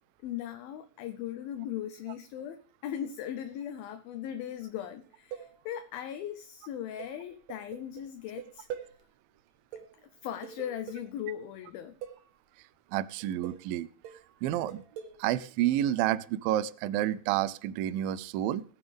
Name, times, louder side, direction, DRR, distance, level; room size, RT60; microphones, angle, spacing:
voice 1, 0.2-8.7 10.0-12.0, left 10 dB, 75° left, 2.3 m, -38 dB
sound 1, 5.0-6.0 7.0-9.0 9.4-9.5 9.7-11.2 12.0-12.4 13.2-13.8 14.0-15.3, right 9 dB, 65° right, 2.5 m, -44 dB
voice 2, 12.9-13.9 14.4-14.8 15.2-18.6, right 12 dB, 90° right, 2.0 m, -29 dB
21.0 x 9.2 x 3.4 m
omnidirectional pair, 4.9 m